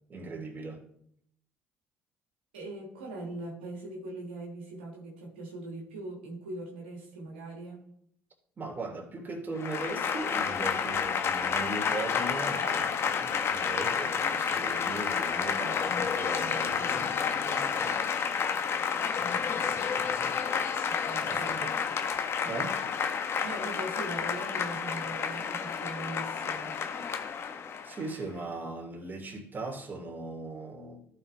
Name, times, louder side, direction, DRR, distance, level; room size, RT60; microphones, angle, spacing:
voice 1, 0.1-0.8 8.6-18.0 21.3-21.8 22.5-22.8 27.8-31.0, right 2 dB, 35° right, 3.0 m, -39 dB
voice 2, 2.5-7.9 20.8-21.8 22.4-22.5 23.4-26.8, right 2 dB, 85° right, 2.0 m, -41 dB
Applause / Crowd, 9.6-28.1, left 6 dB, 50° left, 1.2 m, -30 dB
15.0 x 5.5 x 3.4 m
hypercardioid pair, 55°, 6 cm